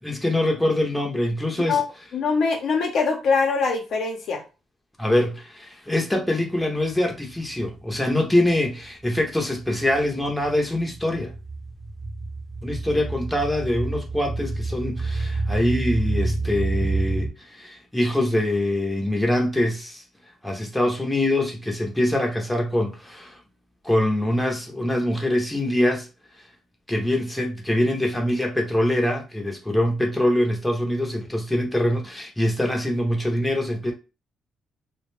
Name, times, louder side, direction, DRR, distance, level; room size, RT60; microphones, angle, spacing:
voice 1, 0.0-1.8 5.0-11.3 12.6-20.0 20.4-23.4 23.8-26.1 26.9-33.9, left 1 dB, 5° left, 0.7 m, -24 dB
voice 2, 2.1-4.4, left 4 dB, 70° left, 0.8 m, -22 dB
sound 1, 6.8-7.7 8.0-17.3, right 3 dB, 20° right, 1.0 m, -29 dB
2.3 x 2.2 x 3.2 m
cardioid pair, 90°, 0 cm